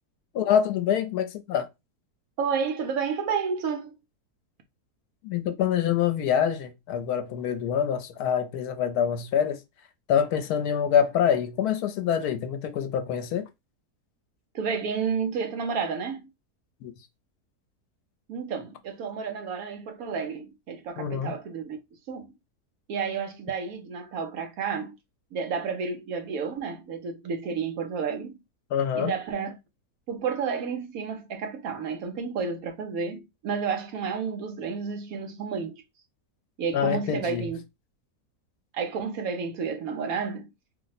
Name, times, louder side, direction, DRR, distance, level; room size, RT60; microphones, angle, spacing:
voice 1, 0.3-1.7 5.2-9.6 10.1-13.5 16.8-16.9 21.0-21.3 28.7-29.1 36.7-37.5, left 8 dB, 80° left, 1.1 m, -25 dB
voice 2, 2.4-4.0 14.5-16.3 18.3-21.8 22.1-22.3 22.9-25.0 25.3-28.4 28.9-29.6 30.1-35.7 36.6-37.6 38.7-40.5, right 6 dB, 70° right, 1.0 m, -31 dB
2.8 x 2.1 x 3.9 m
omnidirectional pair, 1.7 m